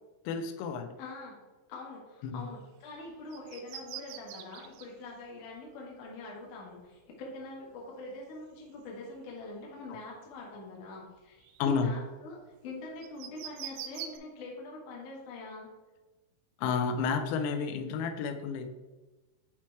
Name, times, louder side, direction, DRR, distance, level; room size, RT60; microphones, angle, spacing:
voice 1, 0.3-1.0 2.2-2.5 11.6-11.9 16.6-18.7, left 6 dB, 90° left, 6 dB, 3.3 m, -31 dB
voice 2, 1.0-1.4 1.7-15.7, left 2 dB, 70° left, -3 dB, 1.9 m, -44 dB
sound 1, 2.4-2.7 3.1-4.9 6.6-6.7 8.6-9.1 9.4-9.9 10.4-10.6 10.9-11.9 13.0-14.2, right 11 dB, 85° right, 3.0 m, -44 dB
8.4 x 3.0 x 4.4 m, 1.2 s
omnidirectional pair, 5.9 m